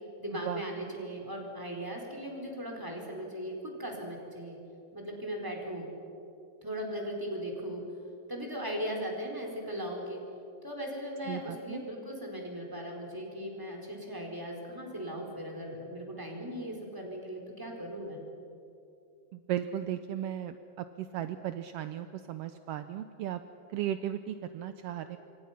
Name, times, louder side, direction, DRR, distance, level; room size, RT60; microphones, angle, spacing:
voice 1, 0.2-4.6 4.9-5.9 6.6-7.8 8.3-10.2 10.6-18.2, equal, 5° right, 0 dB, 3.9 m, -38 dB
voice 2, 11.3-11.8 19.3-23.4 23.7-25.2, right 11 dB, 80° right, 10 dB, 1.4 m, -36 dB
27.5 x 25.0 x 5.8 m, 2.7 s
omnidirectional pair, 3.4 m